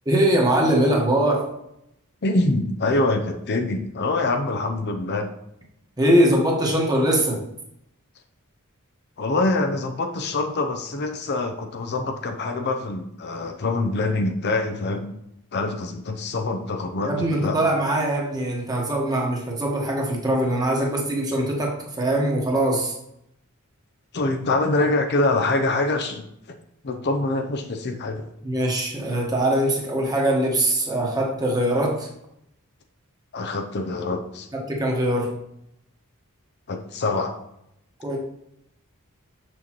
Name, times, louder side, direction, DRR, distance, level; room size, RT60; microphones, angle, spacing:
voice 1, 0.0-1.5 6.0-7.4 17.0-23.0 28.4-32.1 34.5-35.4 38.0-38.2, right 1 dB, 15° right, -1 dB, 1.3 m, -22 dB
voice 2, 2.2-5.3 9.2-15.1 15.5-17.6 24.1-26.2 26.8-28.3 33.3-34.5 36.7-37.3, left 2 dB, 50° left, 5 dB, 0.6 m, -25 dB
6.9 x 6.2 x 3.0 m, 0.78 s
head